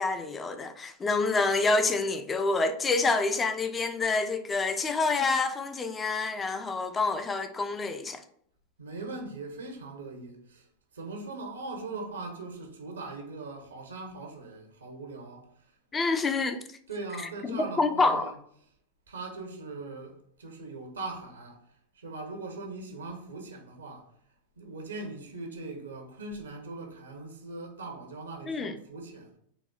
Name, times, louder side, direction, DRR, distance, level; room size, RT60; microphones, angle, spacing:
voice 1, 0.0-8.2 15.9-16.6 17.5-18.3 28.5-28.8, left 3 dB, 20° left, 0.3 m, -27 dB
voice 2, 8.8-10.7 10.9-15.5 16.2-16.3 16.9-18.3 19.1-21.6 22.0-24.1 24.6-29.4, right 3 dB, 85° right, 0.7 m, -40 dB
4.0 x 2.1 x 2.3 m
hypercardioid pair, 95°, 0 cm